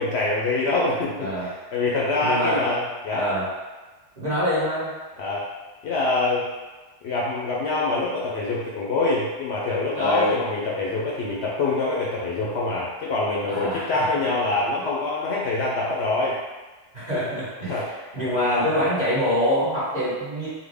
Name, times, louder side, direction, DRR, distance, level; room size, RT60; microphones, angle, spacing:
voice 1, 0.0-3.2 5.2-5.4 5.8-6.5 7.0-16.3 17.6-17.9 18.2-19.0, left 2 dB, 65° left, -4 dB, 0.8 m, -25 dB
voice 2, 2.2-2.7 3.1-3.5 4.2-4.9 9.9-10.4 13.5-13.8 16.9-17.8 18.1-20.5, equal, 35° right, -10 dB, 1.3 m, -25 dB
3.6 x 2.1 x 3.4 m, 1.2 s
omnidirectional pair, 1.3 m